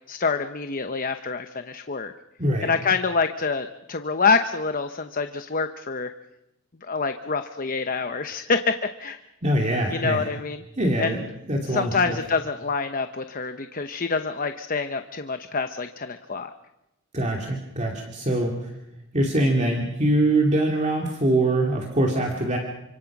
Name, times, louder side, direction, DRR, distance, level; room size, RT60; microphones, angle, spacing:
voice 1, 0.1-2.1 2.6-6.1 6.8-9.2 9.9-10.6 11.0-11.2 11.6-16.5, left 4 dB, 40° left, 8 dB, 0.9 m, -26 dB
voice 2, 9.4-10.2 10.8-11.2 11.5-12.2 17.1-18.7 19.1-22.6, right 1 dB, 30° right, 0 dB, 2.6 m, -23 dB
28.0 x 25.5 x 6.1 m, 0.92 s
head